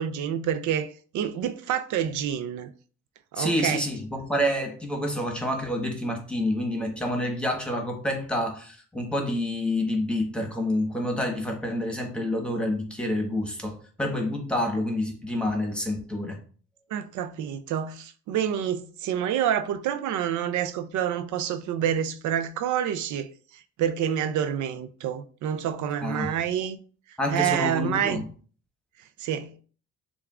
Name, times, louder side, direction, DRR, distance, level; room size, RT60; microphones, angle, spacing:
voice 1, 0.0-2.7 3.3-3.8 16.9-26.8 27.3-28.2 29.2-29.5, right 9 dB, 75° right, 0.5 m, -28 dB
voice 2, 3.3-16.4 26.0-26.3 27.2-28.2, left 1 dB, 5° left, 1.2 m, -28 dB
6.7 x 2.4 x 2.4 m
cardioid pair, 90°, 30 cm